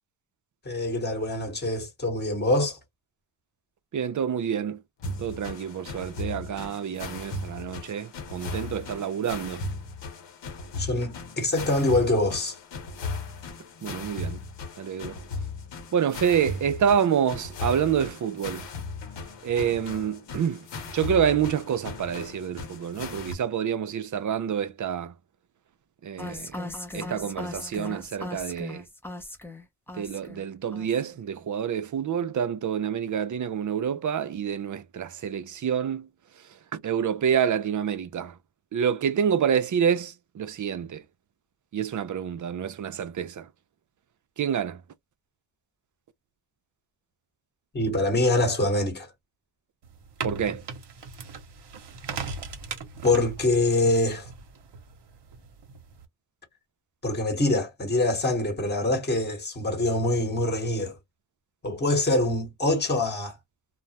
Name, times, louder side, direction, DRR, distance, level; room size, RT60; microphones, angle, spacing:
voice 1, 0.6-2.8 10.8-12.5 47.7-49.1 53.0-54.3 57.0-60.9 61.6-63.3, left 2 dB, 20° left, 1.1 m, -24 dB
voice 2, 3.9-4.8 5.2-9.6 13.8-14.4 14.8-15.1 15.9-18.6 19.4-20.6 20.9-25.1 26.0-26.5 26.9-28.8 30.0-36.1 36.7-38.3 38.7-41.0 41.7-43.4 44.4-44.8 50.2-50.6, right 8 dB, 40° right, 0.4 m, -27 dB
sound 1, 5.0-23.3, left 3 dB, 65° left, 0.9 m, -37 dB
sound 2, 26.2-30.5 30.7-31.2, left 2 dB, 5° left, 0.6 m, -38 dB
sound 3, 49.8-56.0, right 5 dB, 60° right, 0.8 m, -39 dB
2.3 x 2.0 x 2.8 m
cardioid pair, 75°, 47 cm